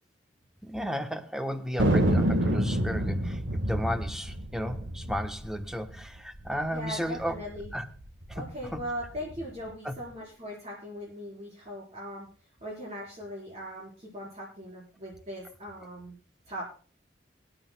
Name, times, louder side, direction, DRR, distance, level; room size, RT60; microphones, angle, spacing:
voice 1, 0.6-7.3 7.7-7.9 8.4-8.5 8.7-8.8 9.8-9.9, equal, 5° right, 7 dB, 1.0 m, -34 dB
Thunder, 1.8-6.6 6.9-7.0 7.2-7.7 8.2-9.4, right 1 dB, 90° right, 1.6 m, -28 dB
voice 2, 6.7-7.7 8.3-12.3 12.6-16.2 16.5-16.6, equal, 35° right, -4 dB, 4.4 m, -39 dB
24.0 x 11.0 x 2.3 m, 0.41 s
head